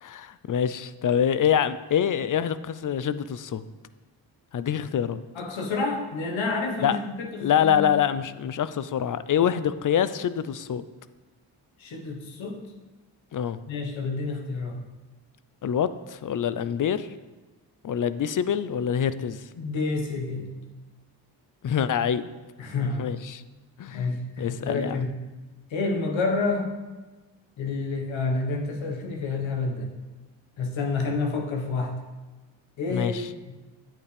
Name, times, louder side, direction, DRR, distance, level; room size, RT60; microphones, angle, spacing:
voice 1, 0.0-3.6 4.5-5.2 6.8-7.0 7.4-10.8 13.3-13.6 15.6-17.1 17.8-19.5 21.6-22.3 23.0-23.4 23.8-24.1 24.4-25.0 32.9-33.3, left 8 dB, 45° left, 14 dB, 0.5 m, -25 dB
voice 2, 5.3-7.9 11.8-12.6 13.7-14.8 19.6-20.5 22.6-23.1 23.9-25.1 25.7-26.8 27.6-29.9 30.6-31.9 32.8-33.5, left 3 dB, 80° left, 2 dB, 1.3 m, -29 dB
8.7 x 8.6 x 3.3 m, 1.2 s
supercardioid pair, 45°, 46 cm